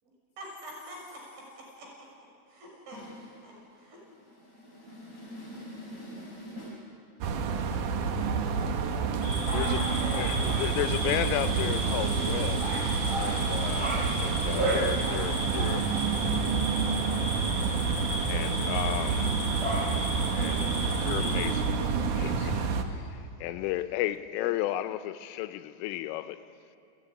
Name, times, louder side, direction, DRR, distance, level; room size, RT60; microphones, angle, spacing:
voice 1, 0.0-2.1 2.5-3.0 3.4-4.0 9.4-10.3, right 1 dB, 65° right, 8.6 m, -44 dB
voice 2, 2.9-6.8, equal, 15° right, 4.8 m, -45 dB
sound 1, 7.2-22.8, right 5 dB, 85° right, 1.7 m, -29 dB
sound 2, 9.2-21.5, right 1 dB, 20° left, 7.3 m, -34 dB
voice 3, 10.2-12.7 13.2-15.8 18.3-19.8 20.3-20.7 21.0-26.4, left 14 dB, 85° left, 3.4 m, -34 dB
29.5 x 13.5 x 9.9 m
omnidirectional pair, 5.7 m